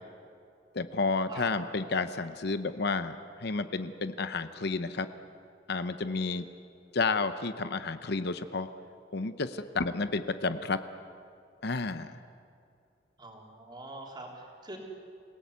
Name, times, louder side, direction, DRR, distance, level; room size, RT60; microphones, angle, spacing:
voice 1, 0.7-5.1 5.7-6.5 6.9-8.7 9.1-10.8 11.6-12.1, left 3 dB, 60° left, 11 dB, 0.8 m, -31 dB
voice 2, 13.2-14.8, right 2 dB, 25° right, -1 dB, 3.8 m, -44 dB
27.5 x 17.5 x 8.3 m, 2.4 s
head